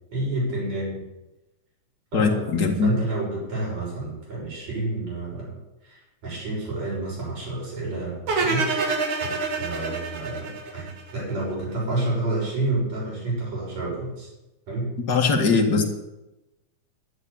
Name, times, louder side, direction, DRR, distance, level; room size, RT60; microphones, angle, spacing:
voice 1, 0.1-1.0 2.1-14.3 14.7-14.9, right 2 dB, 65° right, -5 dB, 7.8 m, -30 dB
voice 2, 2.1-2.9 15.1-15.8, left 4 dB, 40° left, 2 dB, 1.9 m, -20 dB
sound 1, 8.3-11.4, right 4 dB, 85° right, 3.5 m, -27 dB
11.0 x 10.5 x 7.2 m, 0.99 s
omnidirectional pair, 3.3 m